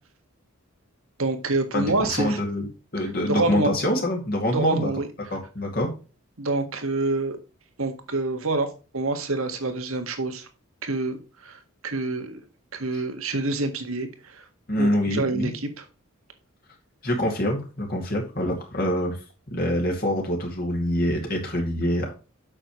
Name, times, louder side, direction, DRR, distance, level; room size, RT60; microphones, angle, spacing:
voice 1, 1.2-2.4 3.3-3.7 4.5-5.1 6.4-7.4 7.8-8.7 8.9-10.5 10.8-12.4 12.7-14.4 14.8-15.5 15.8-15.9, right 2 dB, 75° right, 7 dB, 1.7 m, -27 dB
voice 2, 1.7-4.9 5.3-5.9 12.9-13.0 14.7-15.6 17.0-19.2 19.5-22.1, left 1 dB, 45° left, 0 dB, 2.2 m, -25 dB
8.8 x 6.7 x 3.1 m, 0.33 s
head